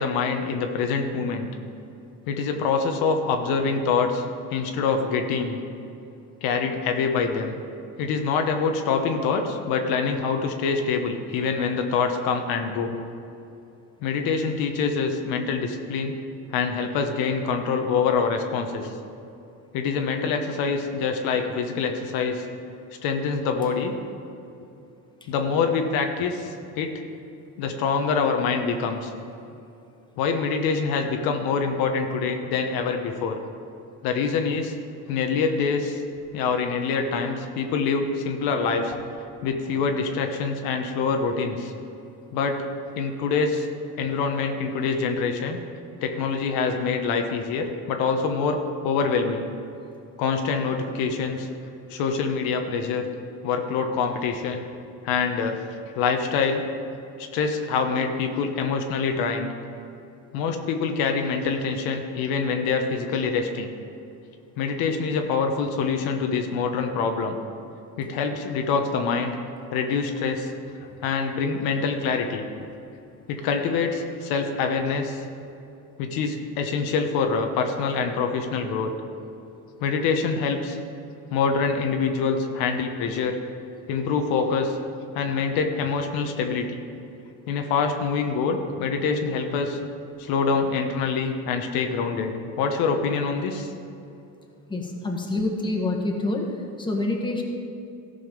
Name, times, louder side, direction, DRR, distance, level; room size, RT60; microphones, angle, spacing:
voice 1, 0.0-1.5 2.3-4.2 4.5-5.6 6.4-7.5 8.0-12.9 14.0-16.1 16.5-18.9 19.7-22.4 23.0-23.9 25.3-27.0 27.6-29.1 30.2-33.4 34.0-34.7 35.1-36.0 36.3-38.9 39.4-41.7 42.3-42.6 43.0-43.7 44.0-45.6 46.0-49.4 50.2-51.5 51.9-53.0 53.4-54.6 55.0-55.6 55.9-56.6 57.2-59.5 60.3-63.7 64.6-67.4 68.0-69.3 69.7-70.5 71.0-72.4 73.3-75.2 76.0-78.9 79.8-80.8 81.3-83.4 83.9-84.8 85.1-86.8 87.5-89.8 90.2-93.7, left 5 dB, 80° left, 4 dB, 1.0 m, -25 dB
voice 2, 94.7-96.5 96.8-97.4, left 2 dB, 15° left, 1 dB, 1.5 m, -26 dB
14.5 x 5.5 x 5.3 m, 2.7 s
cardioid pair, 105°, 35 cm